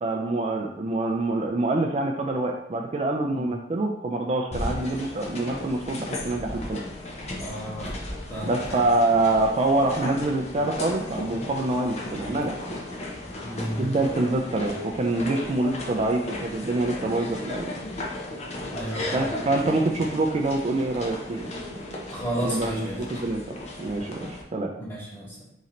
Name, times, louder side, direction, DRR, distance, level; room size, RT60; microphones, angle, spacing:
voice 1, 0.0-6.8 8.4-12.5 13.7-17.8 19.1-21.9 22.4-24.7, right 2 dB, 35° right, 1 dB, 0.4 m, -26 dB
sound 1, 4.5-24.4, left 1 dB, 40° left, 0.7 m, -35 dB
voice 2, 7.4-7.9 8.3-8.8 13.4-13.9 18.7-19.3 22.1-23.0 24.8-25.4, right 1 dB, 15° left, -7 dB, 1.7 m, -32 dB
4.1 x 3.1 x 3.8 m, 0.78 s
head